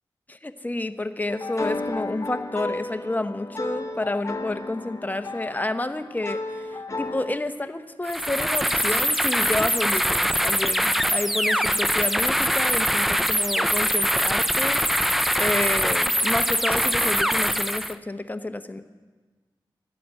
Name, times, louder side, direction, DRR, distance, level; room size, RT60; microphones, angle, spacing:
voice 1, 0.3-14.8 15.3-18.8, left 2 dB, 20° left, 9 dB, 0.8 m, -30 dB
sound 1, 1.3-7.4, left 2 dB, 35° left, 1.0 m, -33 dB
sound 2, 8.0-18.0, equal, ahead, 0.5 m, -23 dB
12.5 x 10.0 x 8.2 m, 1.4 s
wide cardioid pair, 65°, 9 cm